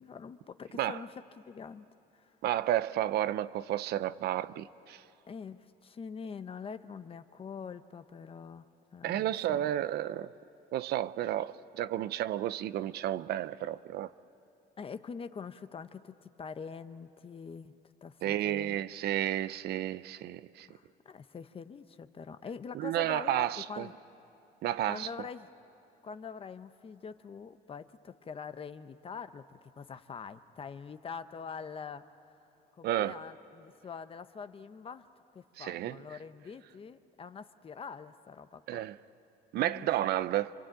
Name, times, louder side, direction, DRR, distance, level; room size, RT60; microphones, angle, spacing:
voice 1, 0.0-1.9 2.1-2.3 5.3-9.7 14.8-17.7 18.0-18.8 20.7-23.9 24.6-25.5 26.0-32.4 32.7-35.1 35.3-38.8 39.5-39.9, left 6 dB, 35° left, 0.9 m, -44 dB
voice 2, 2.4-5.0 9.0-10.3 10.7-14.1 18.2-20.7 22.7-23.9 24.6-25.1 32.8-33.2 35.6-36.0 38.7-39.0 39.5-40.5, right 13 dB, 70° right, 0.6 m, -32 dB
28.0 x 23.5 x 9.0 m
cardioid pair, 110°, 17 cm